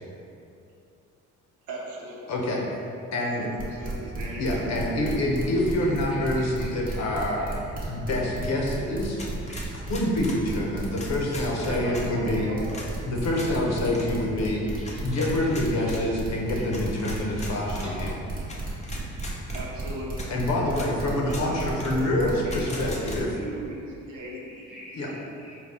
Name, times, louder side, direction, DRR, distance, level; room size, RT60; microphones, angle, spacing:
voice 1, 1.7-2.4 3.2-4.7 11.7-12.9 19.5-20.3 21.2-25.1, right 1 dB, 80° right, -4 dB, 0.8 m, -38 dB
voice 2, 2.3-2.6 3.1-3.5 4.4-7.4 7.8-9.2 9.7-12.5 13.0-14.6 15.0-18.1 20.3-23.3 24.9-25.1, left 1 dB, 60° left, -2 dB, 0.7 m, -26 dB
sound 1, 3.6-23.2, right 2 dB, 30° right, 1.1 m, -34 dB
voice 3, 5.6-7.0 7.4-7.7 8.5-8.7 9.5-9.6 13.2-13.3 13.7-13.9 14.6-16.0 16.6-17.3 17.8-18.1 24.6-25.5, equal, 5° right, -8 dB, 1.3 m, -47 dB
sound 2, 9.2-10.4 10.9-12.1 12.7-12.9 13.3-13.5 13.9-14.1 14.9-16.0 16.7-17.9 18.5-18.6 18.8-19.6 20.2-20.3 20.7-20.9 21.3-21.5 21.8-21.9 22.5-23.2, left 2 dB, 25° left, 0.6 m, -40 dB
4.1 x 2.2 x 3.5 m, 2.6 s
cardioid pair, 90°, 30 cm